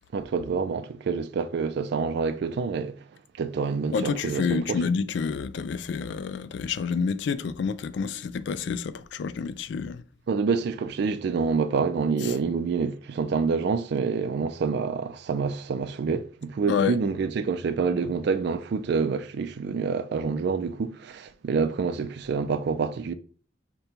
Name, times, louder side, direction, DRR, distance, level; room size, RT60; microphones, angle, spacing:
voice 1, 0.1-3.0 3.4-4.8 10.3-23.1, right 5 dB, 60° right, 0.3 m, -27 dB
voice 2, 3.9-10.0 12.2-12.3 16.7-17.0, left 5 dB, 65° left, 0.3 m, -28 dB
5.1 x 2.2 x 4.3 m
head